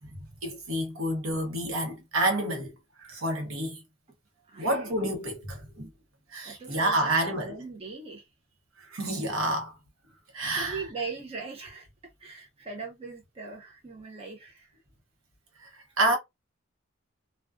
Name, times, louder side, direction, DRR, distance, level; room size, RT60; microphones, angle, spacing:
voice 1, 0.1-2.7 3.0-3.8 4.6-5.9 6.3-7.6 8.8-9.7 10.3-10.8 15.6-16.2, right 1 dB, 75° right, 0.9 m, -29 dB
voice 2, 4.5-4.9 6.4-8.2 10.5-11.9 12.2-14.7, right 4 dB, 30° right, 0.5 m, -40 dB
2.3 x 2.2 x 2.3 m
head